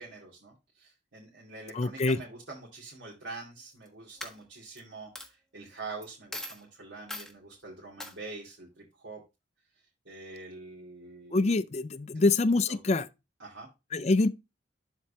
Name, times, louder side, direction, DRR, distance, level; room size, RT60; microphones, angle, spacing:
voice 1, 0.0-9.2 10.0-11.6 12.1-12.3 12.7-12.8 13.4-13.7, right 3 dB, 85° right, 2.5 m, -45 dB
voice 2, 1.7-2.2 11.3-13.1 13.9-14.3, left 3 dB, 35° left, 0.4 m, -25 dB
Coin (dropping), 3.6-3.9 4.2-4.8 5.1-5.3 6.0-6.1 6.3-6.6 7.1-7.3 8.0-8.1, left 1 dB, 5° left, 1.3 m, -40 dB
12.0 x 4.4 x 2.8 m
head